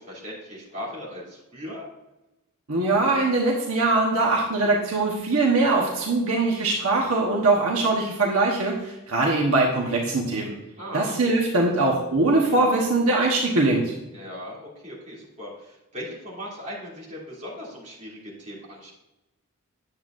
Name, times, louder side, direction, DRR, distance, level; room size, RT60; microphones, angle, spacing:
voice 1, 0.0-1.9 10.8-11.3 14.1-18.9, equal, 35° right, -6 dB, 2.9 m, -38 dB
voice 2, 2.7-10.5 10.9-13.9, right 2 dB, 75° right, -1 dB, 1.2 m, -22 dB
9.4 x 7.8 x 2.6 m, 0.97 s
head